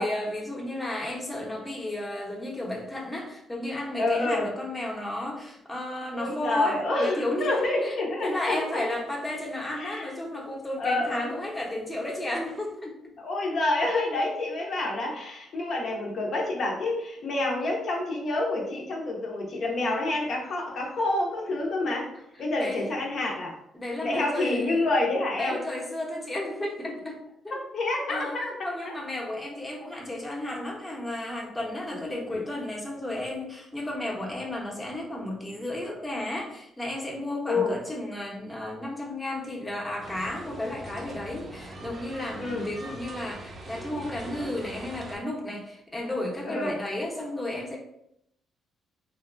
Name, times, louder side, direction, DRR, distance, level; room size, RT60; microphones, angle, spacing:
voice 1, 0.0-7.9 8.2-13.1 15.8-16.0 22.1-22.2 22.6-22.8 23.7-24.9 25.4-27.2 27.4-27.6 28.1-47.8, left 1 dB, 10° left, -2 dB, 0.7 m, -33 dB
voice 2, 4.0-4.5 6.1-8.9 9.8-10.0 10.8-11.4 13.2-22.1 22.4-23.5 24.0-25.6 27.7-28.5 28.8-28.9 32.3-32.4 37.5-37.8 42.4-42.7 46.5-46.7, left 2 dB, 60° left, -1 dB, 0.6 m, -28 dB
sound 1, 40.0-45.2, right 1 dB, 40° right, 0.5 m, -42 dB
2.8 x 2.1 x 2.5 m, 0.75 s
cardioid pair, 90°, 0 cm